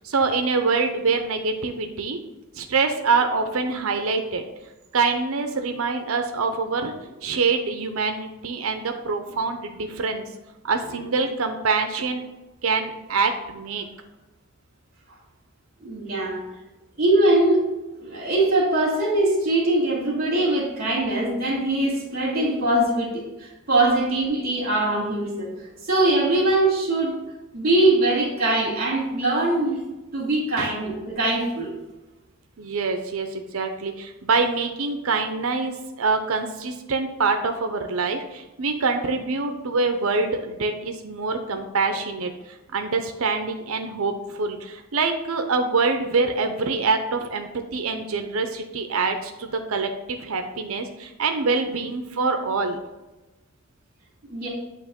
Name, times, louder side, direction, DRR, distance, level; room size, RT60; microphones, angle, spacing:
voice 1, 0.0-2.2 2.5-4.4 4.9-6.9 7.2-10.2 10.6-12.2 12.6-13.8 30.6-30.7 32.6-42.3 42.7-52.8, right 4 dB, 70° right, 6 dB, 0.6 m, -25 dB
voice 2, 15.8-16.4 17.0-17.6 18.0-25.5 25.8-27.1 27.5-29.8 30.1-31.7 41.9-42.0 54.2-54.5, right 2 dB, 50° right, -7 dB, 1.9 m, -22 dB
8.5 x 3.0 x 5.1 m, 1.1 s
head